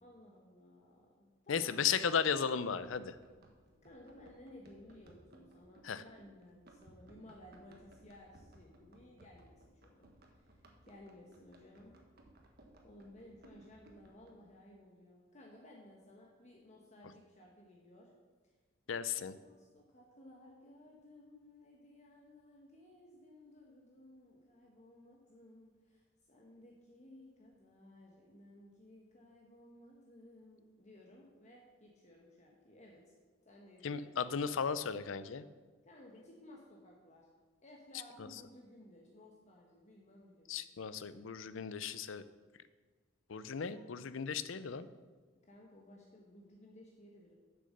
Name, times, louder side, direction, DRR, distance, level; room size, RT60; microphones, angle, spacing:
voice 1, 0.0-1.9 3.8-12.0 12.8-18.1 18.9-19.1 19.3-33.1 33.4-34.1 35.8-37.3 37.6-40.6 43.5-43.9 45.4-47.3, left 1 dB, 35° left, -1 dB, 1.2 m, -58 dB
voice 2, 1.5-3.1 5.8-6.0 18.9-19.3 33.8-35.4 40.5-42.2 43.3-44.9, left 6 dB, 75° left, 14 dB, 0.5 m, -35 dB
Run, 2.6-14.3, right 1 dB, 50° right, 1.3 m, -62 dB
7.7 x 6.8 x 6.6 m, 1.4 s
head